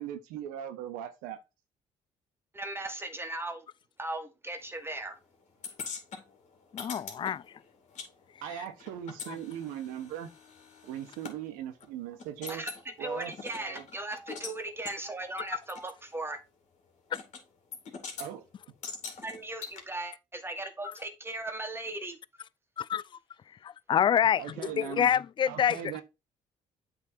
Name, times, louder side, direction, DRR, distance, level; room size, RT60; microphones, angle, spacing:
voice 1, 0.0-1.4 8.4-10.3 10.8-12.7 13.0-13.8 18.2-18.5 24.4-25.1 25.5-26.0, right 10 dB, 90° right, 1.2 m, -39 dB
voice 2, 2.5-3.7 4.0-5.2 12.5-12.7 13.0-16.4 19.2-22.2, right 2 dB, 15° right, 1.7 m, -37 dB
sound 1, 5.6-8.1 8.4-11.4 11.8-11.9 12.2-12.8 13.3-14.6 14.9-15.0 15.8-15.9 17.1-17.4 17.7-18.3 18.8-19.8, left 5 dB, 60° left, 2.3 m, -42 dB
voice 3, 6.7-7.4 15.4-15.5 22.8-23.0 23.6-25.8, left 9 dB, 35° left, 0.3 m, -27 dB
7.9 x 3.8 x 4.4 m
supercardioid pair, 70°, 13 cm